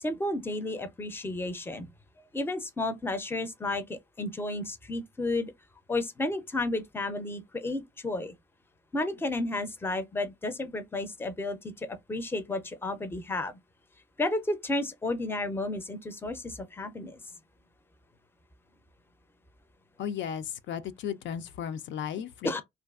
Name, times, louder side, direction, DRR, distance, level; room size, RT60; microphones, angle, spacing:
voice 1, 0.0-1.9 2.3-5.5 5.9-8.3 8.9-13.6 14.2-17.2 22.4-22.6, left 2 dB, 10° left, 0.5 m, -32 dB
voice 2, 20.0-22.6, left 8 dB, 70° left, 0.4 m, -35 dB
2.5 x 2.4 x 2.3 m
cardioid pair, 90°, 20 cm